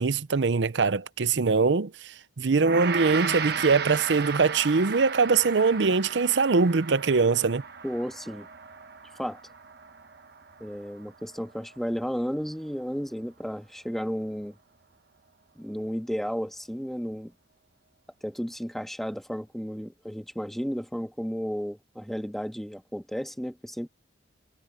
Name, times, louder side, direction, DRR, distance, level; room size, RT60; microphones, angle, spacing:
voice 1, 0.0-7.6, right 4 dB, 90° right, 0.7 m, -23 dB
Gong, 2.6-12.0, right 6 dB, 65° right, 1.1 m, -35 dB
voice 2, 7.8-8.5 9.2-9.4 10.6-14.5 15.5-17.3 18.2-23.9, equal, ahead, 1.6 m, -33 dB
head